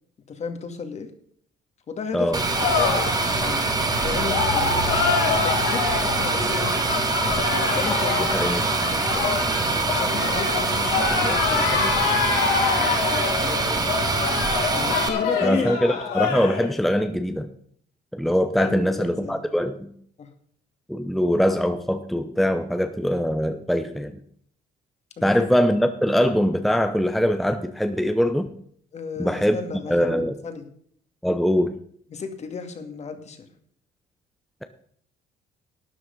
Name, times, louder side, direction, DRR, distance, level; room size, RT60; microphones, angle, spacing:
voice 1, 0.3-1.1 1.9-3.0 3.4-4.8 5.4-6.9 7.7-8.3 8.9-9.3 9.9-12.2 13.1-13.9 14.7-15.7 18.6-19.4 20.2-20.3 28.9-30.7 32.1-33.5, left 5 dB, 40° left, 7 dB, 2.2 m, -33 dB
sound 1, 2.3-15.1, right 3 dB, 20° right, 1.9 m, -24 dB
sound 2, 2.5-16.7, left 6 dB, 85° left, 3.9 m, -26 dB
voice 2, 8.2-8.6 15.4-17.5 18.1-19.9 20.9-24.2 25.2-28.5 29.2-29.6 29.9-30.3 31.2-31.7, equal, ahead, 7 dB, 0.8 m, -22 dB
12.5 x 9.8 x 5.3 m, 0.62 s
cardioid pair, 110°, 17 cm